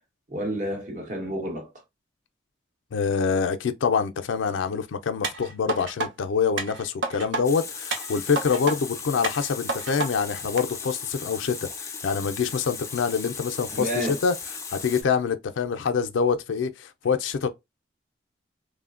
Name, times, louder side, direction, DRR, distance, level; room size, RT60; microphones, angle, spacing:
voice 1, 0.3-1.8 13.7-14.2, equal, 40° right, 0.9 m, -30 dB
voice 2, 2.9-13.9 14.2-14.3 14.7-17.5, left 6 dB, 85° left, 0.4 m, -26 dB
sound 1, 5.2-6.1 6.6-7.4 7.9-8.8 9.2-10.1 10.6-10.7, right 3 dB, 75° right, 0.6 m, -30 dB
Water tap faucet, 7.4-15.0, left 5 dB, 15° left, 0.4 m, -37 dB
3.1 x 2.1 x 2.4 m
head